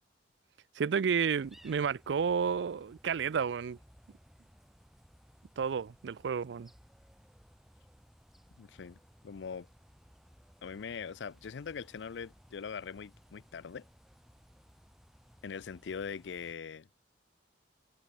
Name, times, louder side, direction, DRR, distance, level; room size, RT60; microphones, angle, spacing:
voice 1, 0.8-3.8 5.6-6.7, right 6 dB, 80° right, 0.4 m, -31 dB
sound 1, 1.4-16.5, equal, ahead, 2.7 m, -60 dB
voice 2, 8.5-9.7 10.6-13.8 15.4-16.9, left 6 dB, 90° left, 0.5 m, -42 dB
head